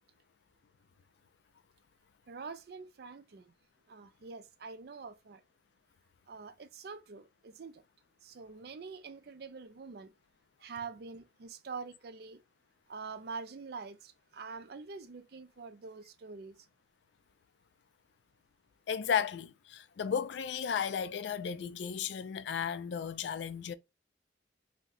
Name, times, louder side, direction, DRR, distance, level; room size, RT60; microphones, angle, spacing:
voice 1, 2.3-3.5 3.9-5.4 6.3-7.8 8.2-10.1 10.6-12.4 12.9-16.6, right 4 dB, 55° right, 0.4 m, -45 dB
voice 2, 18.9-23.7, left 7 dB, 65° left, 0.3 m, -34 dB
2.7 x 2.1 x 3.9 m
head